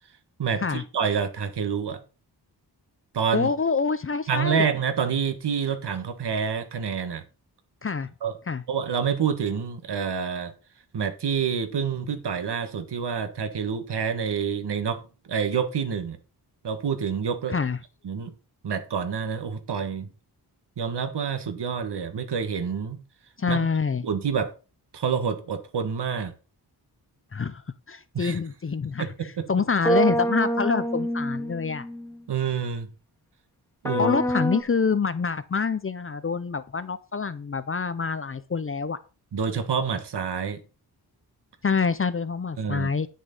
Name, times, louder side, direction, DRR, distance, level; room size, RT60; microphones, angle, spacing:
voice 1, 0.4-2.0 3.1-3.5 4.3-7.2 8.2-8.4 8.7-10.5 10.9-16.2 16.6-17.6 18.0-18.3 18.6-20.1 20.8-23.0 23.5-23.6 24.0-24.5 24.9-26.3 28.1-28.4 29.0-29.5 32.3-32.9 33.8-34.2 39.3-40.6 42.6-42.9, right 6 dB, 80° right, 1.7 m, -27 dB
voice 2, 3.3-4.7 7.8-8.1 8.5-8.6 17.5-17.8 23.4-24.0 27.3-27.6 27.9-29.1 29.5-31.8 34.0-39.0 41.6-43.1, left 5 dB, 35° left, 0.6 m, -26 dB
sound 1, 29.9-32.2 33.9-34.6, right 1 dB, 5° left, 0.9 m, -26 dB
10.0 x 6.5 x 5.4 m
wide cardioid pair, 170°, 40 cm